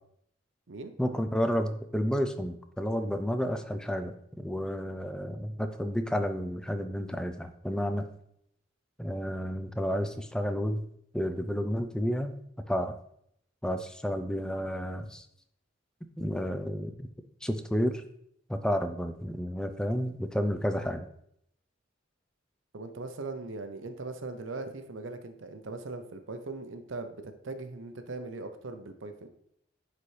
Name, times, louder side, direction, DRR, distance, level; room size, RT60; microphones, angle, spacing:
voice 1, 1.0-8.1 9.0-10.8 11.1-12.3 12.7-12.9 13.6-15.3 16.2-17.1 17.4-18.0 18.5-21.1, equal, 5° left, 8 dB, 0.4 m, -31 dB
voice 2, 22.7-29.3, right 3 dB, 75° right, 8 dB, 0.7 m, -40 dB
9.8 x 4.1 x 3.2 m, 0.71 s
head